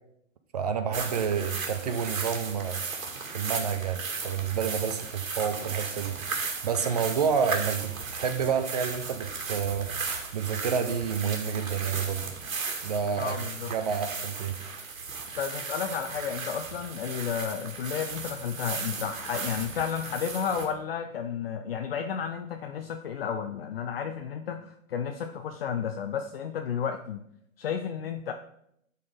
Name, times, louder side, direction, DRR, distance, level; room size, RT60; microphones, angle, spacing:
voice 1, 0.5-2.8 3.3-6.2 6.6-9.9 10.3-12.2 12.8-14.6, right 7 dB, 30° right, 9 dB, 0.6 m, -29 dB
sound 1, 0.9-20.7, right 4 dB, 75° right, 2.2 m, -36 dB
voice 2, 13.2-13.7 15.4-27.2 27.6-28.3, left 7 dB, 45° left, 6 dB, 0.6 m, -32 dB
11.0 x 4.1 x 5.0 m, 0.74 s
hypercardioid pair, 150°, 40 cm